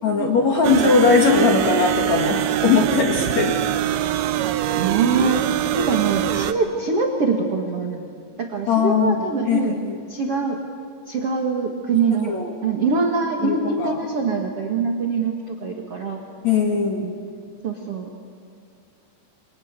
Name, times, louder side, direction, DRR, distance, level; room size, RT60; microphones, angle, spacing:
voice 1, 0.0-3.6 8.7-9.2 9.4-10.0 12.2-12.5 13.4-14.0 16.4-17.1, left 5 dB, 55° left, 1 dB, 2.2 m, -19 dB
sound 1, 0.6-6.5, right 12 dB, 80° right, 2.4 m, -23 dB
voice 2, 4.8-5.4 5.7-8.1 8.4-9.8 10.1-10.6 11.1-12.3 12.6-16.2 17.0-17.1 17.6-18.1, right 4 dB, 55° right, 1 dB, 1.6 m, -23 dB
29.0 x 24.5 x 8.2 m, 2.2 s
omnidirectional pair, 5.5 m